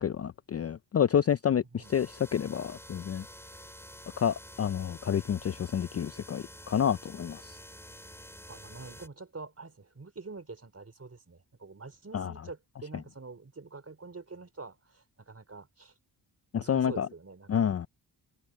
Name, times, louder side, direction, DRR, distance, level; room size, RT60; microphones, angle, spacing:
voice 1, 0.0-3.3 4.2-7.6 12.1-12.3 16.5-17.1 17.5-17.9, left 8 dB, 35° left, 0.4 m, -29 dB
sound 1, 1.8-9.1, equal, 5° left, 4.8 m, -49 dB
voice 2, 8.5-15.9 16.5-17.7, right 4 dB, 35° right, 4.7 m, -46 dB
wide cardioid pair, 95°, 43 cm